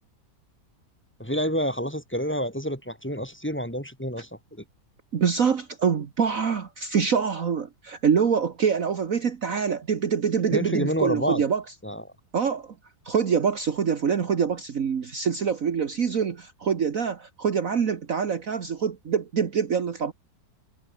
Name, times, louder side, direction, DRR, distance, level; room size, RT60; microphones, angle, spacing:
voice 1, 1.2-4.3 10.5-11.4 11.8-12.0, equal, 5° left, 4.6 m, -28 dB
voice 2, 5.1-11.6 12.3-12.7 13.0-20.1, right 6 dB, 50° right, 1.7 m, -25 dB
omnidirectional pair, 1.8 m